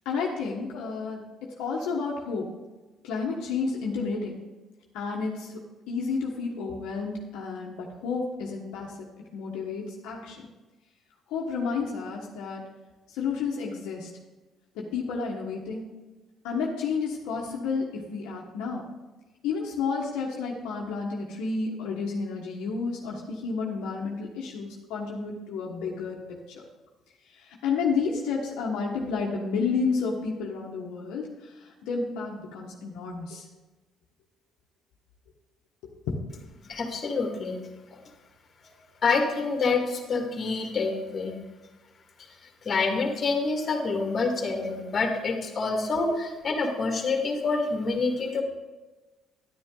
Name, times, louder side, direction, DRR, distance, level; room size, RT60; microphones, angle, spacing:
voice 1, 0.0-2.5 3.0-4.4 4.9-9.1 9.3-10.5 11.3-12.6 13.1-14.1 14.7-15.9 16.4-18.9 19.4-26.2 26.5-26.6 27.3-33.5 36.1-36.2, left 5 dB, 80° left, -2 dB, 1.3 m, -31 dB
voice 2, 36.7-37.6 37.9-38.0 38.6-38.7 39.0-41.3 42.6-48.4, left 4 dB, 45° left, 3 dB, 2.1 m, -27 dB
10.5 x 9.8 x 3.8 m, 1.2 s
supercardioid pair, 70°, 0 cm